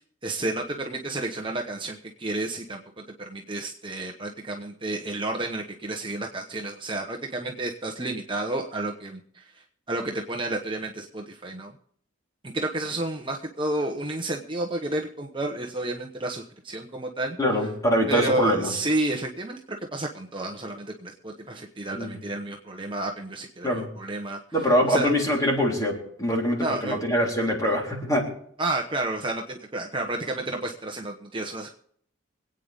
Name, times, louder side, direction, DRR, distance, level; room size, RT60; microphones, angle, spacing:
voice 1, 0.2-11.7 12.4-17.4 18.1-24.4 24.9-25.1 26.6-27.0 28.6-31.7, right 2 dB, 25° right, 2 dB, 1.0 m, -31 dB
voice 2, 17.4-18.7 22.0-22.2 23.6-23.9 24.5-25.9 26.2-28.2, equal, 20° left, -1 dB, 3.6 m, -23 dB
25.0 x 9.0 x 3.5 m, 0.63 s
head